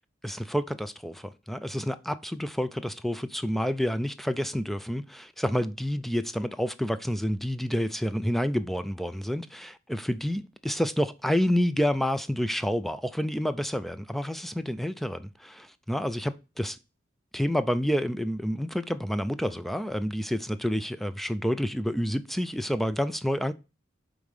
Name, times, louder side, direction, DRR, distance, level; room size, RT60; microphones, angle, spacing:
voice 1, 0.2-16.8 17.3-23.5, equal, ahead, 0.3 m, -29 dB
5.3 x 3.8 x 4.8 m
head